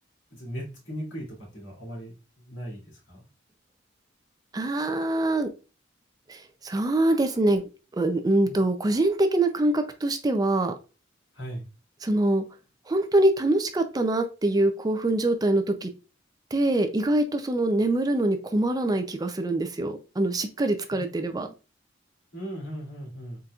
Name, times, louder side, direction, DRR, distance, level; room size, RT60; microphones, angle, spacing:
voice 1, 0.3-2.1 2.4-3.2 8.4-8.6 11.3-11.6 20.9-21.1 21.4-21.5 22.3-23.4, equal, 85° left, -3 dB, 2.4 m, -38 dB
voice 2, 4.5-5.5 6.3-7.6 8.0-10.7 12.0-12.4 12.9-15.9 16.5-21.5, right 1 dB, 20° right, 7 dB, 0.4 m, -24 dB
4.3 x 3.8 x 2.4 m, 0.31 s
head